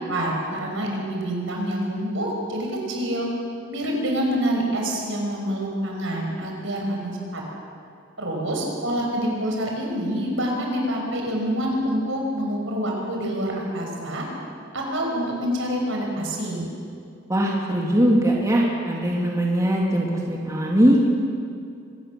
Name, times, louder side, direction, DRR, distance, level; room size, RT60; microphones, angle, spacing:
voice 1, 0.1-3.3 3.7-7.4 8.2-14.3 14.7-16.7, equal, 65° right, 0 dB, 6.0 m, -26 dB
voice 2, 17.3-21.1, equal, 15° right, -2 dB, 2.4 m, -20 dB
24.5 x 19.0 x 7.5 m, 2.4 s
head